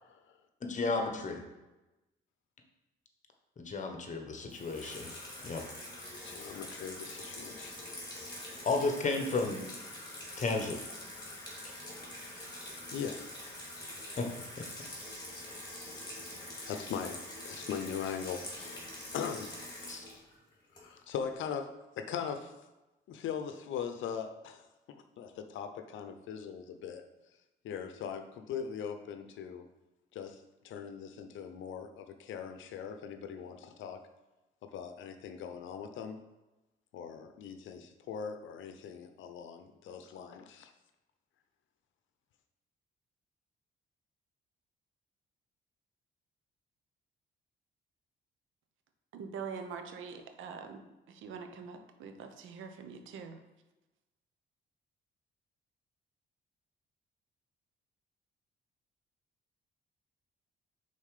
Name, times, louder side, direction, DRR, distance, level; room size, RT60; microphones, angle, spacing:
voice 1, 0.1-0.4 6.1-7.8 8.3-8.5 12.9-13.3 16.3-16.4 16.7-18.8 19.1-19.6 20.7-21.7 22.0-22.5 23.1-27.0 27.6-29.7 30.1-34.0 34.6-36.2 36.9-40.7, left 7 dB, 75° left, 8 dB, 0.7 m, -40 dB
voice 2, 0.6-1.4 3.6-5.1 5.4-5.6 8.6-9.6 10.4-10.8 11.6-11.7 14.2-14.3 14.6-14.7 19.9-20.0, left 3 dB, 40° left, 4 dB, 1.1 m, -33 dB
Water tap faucet / Sink (filling or washing), 4.5-21.2, left 1 dB, 20° left, 2.2 m, -45 dB
voice 3, 49.1-50.8 51.1-53.4, right 5 dB, 80° right, 6 dB, 0.8 m, -44 dB
5.5 x 4.0 x 4.9 m, 1.0 s
cardioid pair, 90°, 20 cm